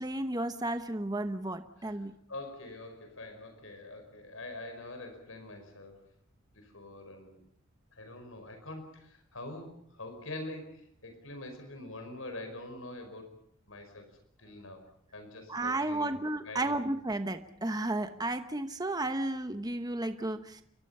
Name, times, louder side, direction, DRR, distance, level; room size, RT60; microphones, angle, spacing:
voice 1, 0.0-2.1 15.5-20.6, right 2 dB, 20° right, 8 dB, 1.0 m, -33 dB
voice 2, 2.3-6.0 6.5-7.4 7.9-13.3 13.7-14.1 14.4-14.8 15.1-16.8, left 2 dB, 70° left, 6 dB, 5.1 m, -45 dB
29.5 x 24.0 x 5.6 m, 0.67 s
head